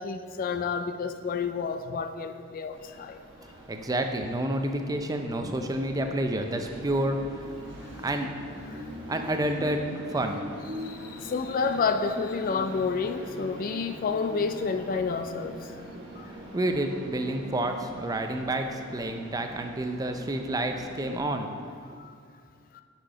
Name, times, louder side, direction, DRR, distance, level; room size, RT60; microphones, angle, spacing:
voice 1, 0.0-3.2 7.8-7.9 8.7-8.9 10.8-15.7 16.1-16.3 22.0-22.1 22.7-22.8, left 5 dB, 45° left, 8 dB, 0.3 m, -30 dB
Train, 2.7-21.2, equal, 60° right, 1.4 m, -43 dB
voice 2, 3.6-7.6 8.0-8.3 9.1-10.5 16.2-21.5, right 1 dB, 20° right, 5 dB, 0.5 m, -29 dB
6.5 x 5.9 x 4.9 m, 2.2 s
head